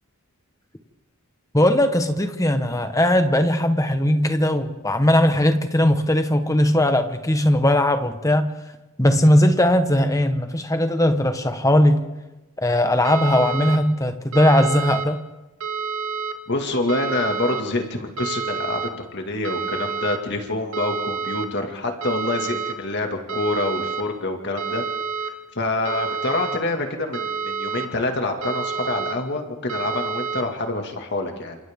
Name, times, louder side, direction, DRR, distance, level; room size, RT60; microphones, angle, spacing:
voice 1, 1.5-8.5 9.0-12.0 12.6-15.2, left 1 dB, 15° left, 7 dB, 1.2 m, -19 dB
sound 1, 13.0-13.8 14.3-15.1 15.6-16.3 16.9-17.6 18.2-18.9 19.4-20.2 20.7-21.5 22.0-22.7 23.3-24.0 24.6-25.3 25.8-26.6 27.1-27.9 28.4-29.1 29.7-30.4, right 6 dB, 80° right, 2.4 m, -28 dB
voice 2, 16.5-24.8 25.6-31.6, left 2 dB, 50° left, 3 dB, 2.2 m, -26 dB
29.5 x 27.0 x 3.7 m, 1.1 s
head